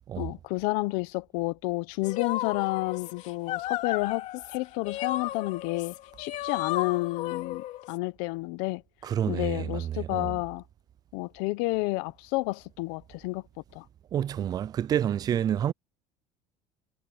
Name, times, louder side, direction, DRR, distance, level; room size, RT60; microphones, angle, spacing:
voice 1, 0.2-8.8 9.3-10.6 11.1-13.4 13.7-13.8, left 22 dB, 90° left, 0.9 m, -30 dB
sound 1, 2.0-7.9, left 14 dB, 55° left, 2.7 m, -34 dB
voice 2, 9.0-10.3 14.1-15.7, right 10 dB, 25° right, 0.4 m, -28 dB
cardioid pair, 160°, 14 cm